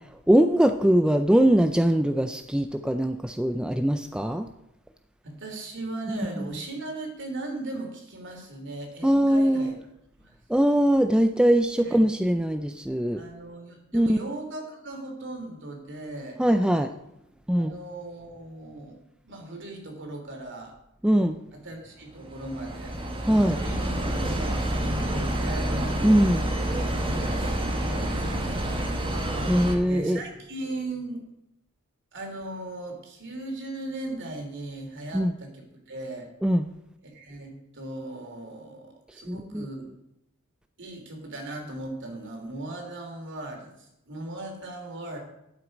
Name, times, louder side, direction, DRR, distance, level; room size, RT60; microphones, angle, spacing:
voice 1, 0.3-4.5 6.4-6.5 9.0-9.7 10.5-13.2 13.9-14.2 16.4-16.9 17.5-17.7 21.0-21.4 23.3-23.6 26.0-26.4 29.5-30.2 35.1-35.3 36.4-36.7 39.3-39.7, equal, 5° right, 7 dB, 0.4 m, -21 dB
voice 2, 5.2-9.8 10.2-10.4 11.8-12.0 13.2-16.4 17.5-19.0 19.2-20.7 21.5-23.0 23.2-25.8 27.0-29.0 29.8-31.2 32.1-36.3 37.0-39.9 40.8-45.2, right 2 dB, 55° right, 3 dB, 3.0 m, -38 dB
sound 1, 22.1-29.8, right 1 dB, 25° right, 1.4 m, -28 dB
11.0 x 8.1 x 5.2 m, 0.84 s
head